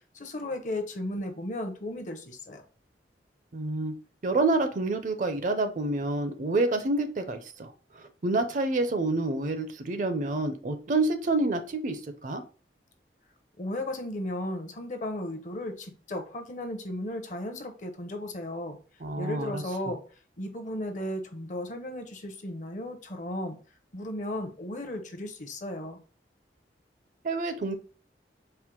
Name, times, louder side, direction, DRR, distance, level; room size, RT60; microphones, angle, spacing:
voice 1, 0.0-2.6 13.6-18.8 19.2-20.0 20.4-23.6 23.9-26.0, left 1 dB, 45° left, 0.6 m, -35 dB
voice 2, 3.5-3.9 4.2-12.4 19.0-19.6 27.2-27.7, right 2 dB, 45° right, 0.5 m, -28 dB
4.4 x 2.1 x 3.7 m
head